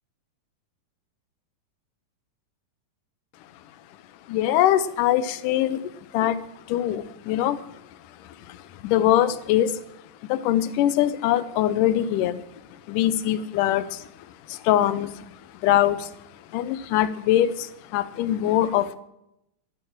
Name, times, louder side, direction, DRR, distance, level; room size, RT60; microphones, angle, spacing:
voice 1, 4.3-6.4 6.7-7.6 8.5-9.8 10.3-12.4 12.9-14.1 14.5-15.2 15.6-16.1 16.5-19.0, left 12 dB, 75° left, 13 dB, 2.3 m, -23 dB
13.0 x 10.5 x 6.5 m, 0.83 s
omnidirectional pair, 3.9 m